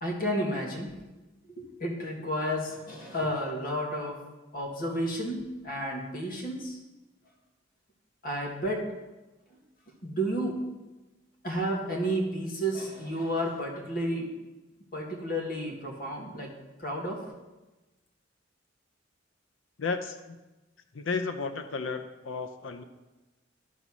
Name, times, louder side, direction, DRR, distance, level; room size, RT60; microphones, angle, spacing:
voice 1, 0.0-0.9 1.6-4.2 4.5-6.8 8.2-8.9 10.0-10.6 11.4-14.3 14.9-16.5 16.8-17.3, equal, 50° left, 0 dB, 1.8 m, -31 dB
voice 2, 19.8-20.4 20.9-22.8, left 4 dB, 80° left, 7 dB, 0.6 m, -33 dB
12.5 x 4.1 x 6.1 m, 1.1 s
head